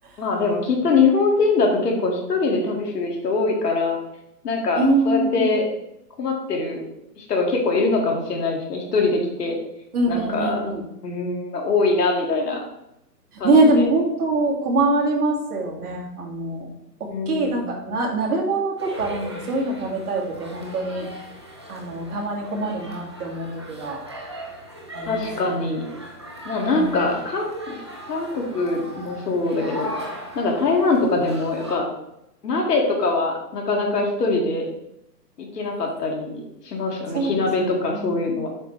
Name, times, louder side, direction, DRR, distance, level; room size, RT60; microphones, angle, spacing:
voice 1, 0.2-4.0 4.4-5.6 6.2-6.8 7.2-9.6 10.1-10.7 11.0-12.6 13.4-13.9 17.1-17.7 25.0-25.8 26.4-27.8 28.1-29.9 30.4-31.9 32.4-34.7 35.4-38.5, left 3 dB, 70° left, 1 dB, 2.3 m, -23 dB
voice 2, 4.8-5.5 9.9-10.8 13.3-16.7 17.0-21.1 21.7-24.0 24.9-25.3 26.7-27.2 37.1-38.2, right 2 dB, 65° right, -2 dB, 2.4 m, -23 dB
sound 1, 18.8-31.7, equal, 20° right, 0.4 m, -38 dB
7.7 x 5.8 x 3.3 m, 0.84 s
hypercardioid pair, 150°, 49 cm